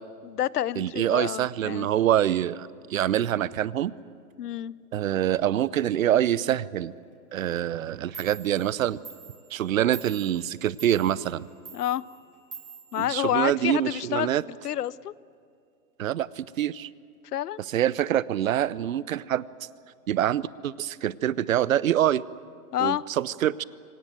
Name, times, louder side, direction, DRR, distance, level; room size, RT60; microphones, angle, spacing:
voice 1, 0.2-1.9 4.4-4.7 11.7-12.0 12.9-14.3 14.6-15.1 17.3-17.6 22.7-23.0, left 11 dB, 70° left, 21 dB, 0.8 m, -28 dB
voice 2, 0.8-3.9 4.9-6.9 7.3-9.0 9.5-11.5 13.0-14.4 16.0-16.9 17.7-19.4 20.1-22.2 22.8-23.6, right 11 dB, 55° right, 19 dB, 0.8 m, -25 dB
Clock, 7.8-7.9 8.1-13.8, right 5 dB, 80° right, 6.9 m, -47 dB
25.5 x 18.0 x 9.3 m, 2.3 s
hypercardioid pair, 160°, 48 cm